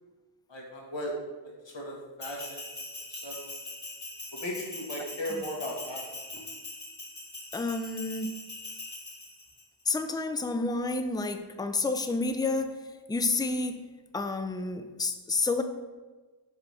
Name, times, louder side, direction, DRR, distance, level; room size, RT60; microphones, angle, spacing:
voice 1, 0.5-1.1 1.7-2.6 3.1-3.4 4.3-6.1 6.3-6.4, left 1 dB, 60° left, -2 dB, 1.5 m, -36 dB
Bell, 2.2-9.6, left 2 dB, 35° left, 1.4 m, -42 dB
voice 2, 7.5-8.3 9.9-12.7 13.1-13.8 14.1-15.6, left 3 dB, 10° left, 7 dB, 0.4 m, -29 dB
5.2 x 4.1 x 4.8 m, 1.3 s
wide cardioid pair, 45°, 49 cm